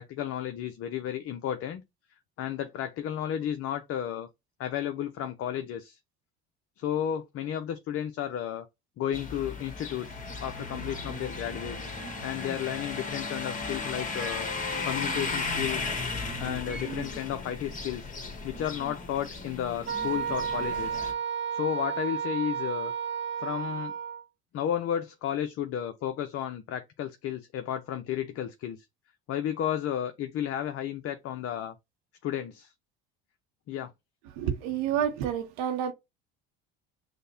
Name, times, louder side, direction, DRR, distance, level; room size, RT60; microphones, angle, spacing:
voice 1, 0.0-1.8 2.4-4.3 4.6-6.0 6.8-8.7 9.0-11.9 12.2-14.5 14.8-15.9 16.4-18.1 18.4-21.0 21.5-22.9 23.4-23.9 24.5-28.8 29.3-31.8 32.2-32.7 33.7-33.9, left 10 dB, 45° left, 0.5 m, -33 dB
sound 1, 9.1-21.1, left 3 dB, 25° left, 1.4 m, -35 dB
Wind instrument woodwind instrument, 19.9-24.2, right 7 dB, 35° right, 0.7 m, -32 dB
voice 2, 34.4-35.9, right 9 dB, 75° right, 0.7 m, -29 dB
6.4 x 2.2 x 2.6 m
hypercardioid pair, 75°, 32 cm